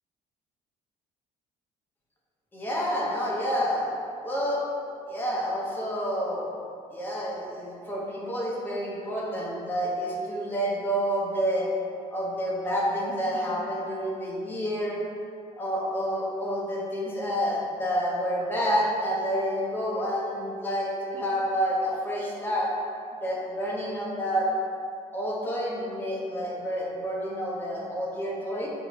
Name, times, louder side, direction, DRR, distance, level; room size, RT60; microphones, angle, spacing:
voice 1, 2.5-3.9 4.2-4.6 5.1-6.4 6.9-11.7 12.1-15.0 15.6-22.7 23.2-24.5 25.1-28.7, equal, 15° left, -5 dB, 0.8 m, -29 dB
6.3 x 2.6 x 3.0 m, 2.5 s
cardioid pair, 165°, 14 cm